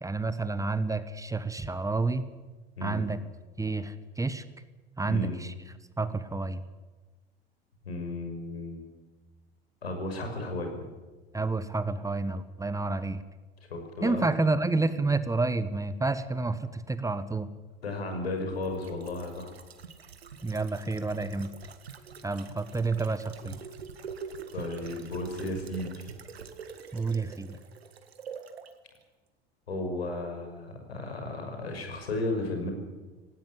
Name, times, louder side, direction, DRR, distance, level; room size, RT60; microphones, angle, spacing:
voice 1, 0.0-2.3 2.8-3.2 3.6-4.4 5.0-5.5 6.0-6.6 11.3-13.2 14.0-17.5 20.4-21.5 22.2-23.6 26.9-27.6, right 3 dB, 10° right, 13 dB, 1.2 m, -29 dB
voice 2, 5.0-5.3 7.8-8.8 9.8-10.7 13.7-14.2 17.8-19.5 24.5-26.1 29.7-32.7, left 2 dB, 80° left, 4 dB, 5.7 m, -34 dB
sound 1, 18.4-28.7 29.0-29.1, right 6 dB, 80° right, 1.8 m, -45 dB
18.0 x 18.0 x 9.9 m, 1.2 s
figure-of-eight pair, 75°, 31 cm